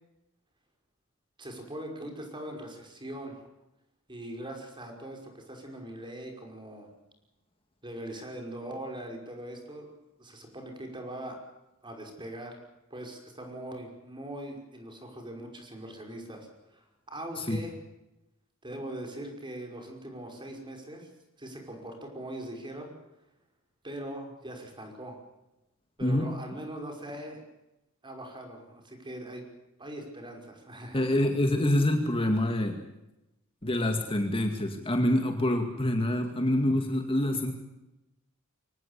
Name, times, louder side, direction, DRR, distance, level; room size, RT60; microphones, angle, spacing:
voice 1, 1.4-3.4 4.1-6.9 7.8-9.9 10.2-11.4 11.8-12.6 12.9-17.7 18.6-21.1 21.4-22.9 23.8-25.2 26.0-27.4 28.0-29.4 29.8-31.0, right 1 dB, 20° right, 3 dB, 5.6 m, -41 dB
voice 2, 30.9-32.8 33.6-37.5, left 1 dB, 25° left, 5 dB, 2.2 m, -26 dB
24.5 x 19.0 x 8.3 m, 0.94 s
head